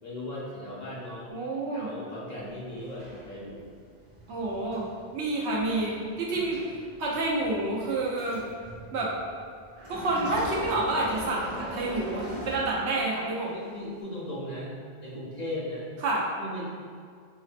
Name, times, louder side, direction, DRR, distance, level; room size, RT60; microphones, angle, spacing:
voice 1, 0.0-1.3 1.7-3.6 6.3-6.5 13.5-14.7 15.0-15.9 16.4-16.7, left 1 dB, 50° left, -7 dB, 0.6 m, -37 dB
voice 2, 1.3-1.9 4.3-4.9 5.1-6.6 7.0-8.4 8.9-9.1 9.9-13.6 16.0-16.2, right 2 dB, 85° right, -4 dB, 0.9 m, -28 dB
sound 1, 2.4-13.2 13.9-14.0, equal, 45° right, 0.7 m, -42 dB
4.8 x 2.1 x 2.5 m, 2.1 s
omnidirectional pair, 1.1 m